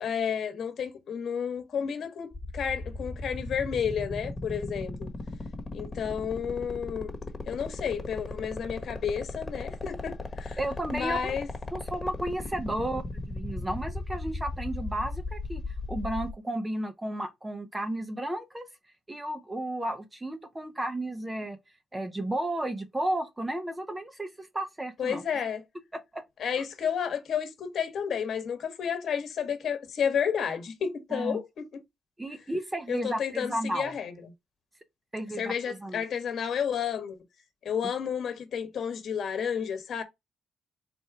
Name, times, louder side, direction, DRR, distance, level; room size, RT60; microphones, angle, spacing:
voice 1, 0.0-5.1 5.7-7.1 7.5-10.6 10.9-11.5 25.0-25.6 26.4-31.7 32.9-34.1 35.4-37.2 37.6-40.0, left 7 dB, 60° left, 1.2 m, -31 dB
sound 1, 2.3-16.3, left 3 dB, 15° left, 1.3 m, -36 dB
voice 2, 10.6-11.4 11.7-18.7 19.1-21.6 21.9-25.2 25.9-26.2 31.1-31.4 32.2-33.9 35.1-36.0, right 1 dB, 15° right, 0.7 m, -33 dB
4.3 x 2.3 x 4.7 m
cardioid pair, 90°, 0 cm